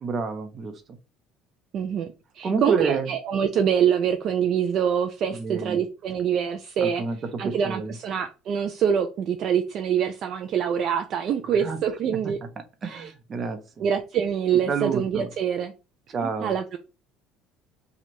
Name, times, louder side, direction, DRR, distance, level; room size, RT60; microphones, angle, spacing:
voice 1, 0.0-0.7 2.4-3.1 5.3-5.8 6.8-7.2 7.4-8.0 11.6-11.8 12.8-13.8 14.7-15.3 16.1-16.5, right 4 dB, 35° right, 0.8 m, -29 dB
voice 2, 1.7-7.0 7.4-12.4 12.8-13.1 13.8-15.7 16.2-16.8, right 8 dB, 55° right, 0.4 m, -25 dB
3.1 x 2.4 x 4.2 m
supercardioid pair, 100°, 0 cm